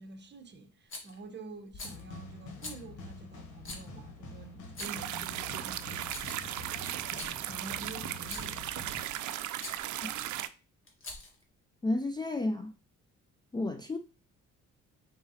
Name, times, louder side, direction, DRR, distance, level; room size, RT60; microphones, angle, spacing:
voice 1, 0.0-6.3 7.1-8.6, right 3 dB, 35° right, 0.9 m, -48 dB
Rattle, 0.9-1.2 1.7-2.0 2.6-2.8 3.6-3.9 4.6-5.1 5.8-6.5 7.0-7.3 8.2-8.6 9.6-9.8 10.9-11.4, left 2 dB, 40° left, 1.5 m, -43 dB
sound 1, 1.8-9.0, left 3 dB, 85° left, 1.2 m, -47 dB
sound 2, 4.8-10.5, right 13 dB, 75° right, 0.5 m, -37 dB
voice 2, 11.8-12.7 13.5-14.0, left 2 dB, 15° left, 0.3 m, -31 dB
4.8 x 3.9 x 2.8 m
cardioid pair, 90°, 30 cm